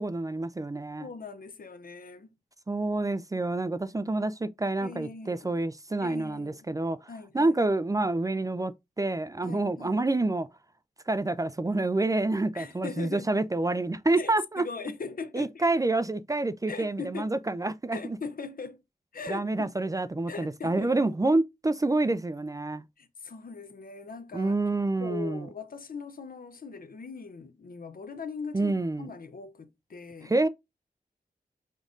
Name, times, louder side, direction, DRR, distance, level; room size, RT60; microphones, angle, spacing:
voice 1, 0.0-1.1 2.7-7.1 7.3-10.5 11.1-14.6 15.3-18.2 19.3-22.8 24.3-25.5 28.5-29.1 30.2-30.5, right 2 dB, 20° right, 0.4 m, -28 dB
voice 2, 1.0-2.3 4.8-5.5 6.0-6.7 7.1-7.5 9.4-10.0 12.5-13.3 14.2-15.6 16.7-17.3 17.9-18.8 19.1-19.7 20.3-20.9 23.0-24.5 25.0-30.3, left 4 dB, 65° left, 0.7 m, -40 dB
5.2 x 2.6 x 3.7 m
cardioid pair, 55°, 16 cm